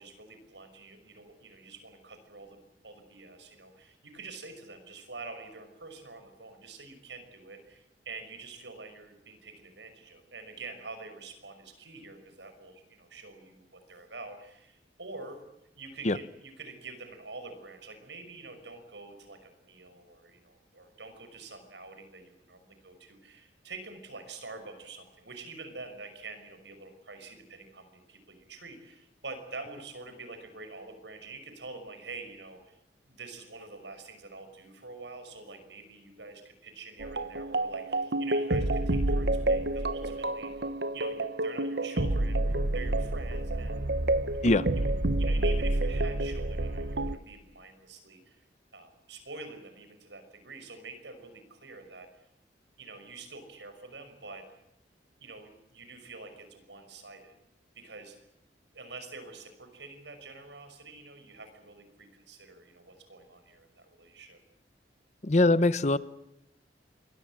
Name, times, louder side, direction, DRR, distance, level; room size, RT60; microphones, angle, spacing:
voice 1, 0.0-15.4 15.7-32.8 33.1-40.7 40.9-43.9 44.2-44.9 45.2-48.4 48.7-52.1 52.8-54.5 55.2-57.4 57.7-58.2 58.7-64.4, right 3 dB, 80° right, 8 dB, 5.9 m, -46 dB
sound 1, 37.0-47.2, right 1 dB, 65° right, 1.2 m, -29 dB
voice 2, 65.2-66.0, left 2 dB, 40° left, 15 dB, 0.9 m, -22 dB
27.5 x 23.0 x 7.6 m, 0.84 s
head